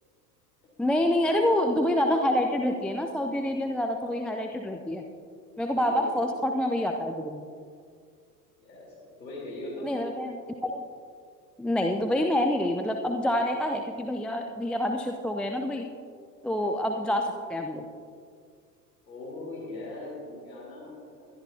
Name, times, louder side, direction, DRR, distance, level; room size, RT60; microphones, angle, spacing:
voice 1, 0.8-5.0 5.6-7.4 9.8-10.8 11.6-15.9 16.4-17.9, left 1 dB, ahead, 4 dB, 0.3 m, -27 dB
voice 2, 5.7-6.3 8.6-8.9 9.2-9.9 19.1-21.3, left 2 dB, 90° left, -6 dB, 3.6 m, -40 dB
21.0 x 12.5 x 2.7 m, 2.2 s
hypercardioid pair, 80°, 50 cm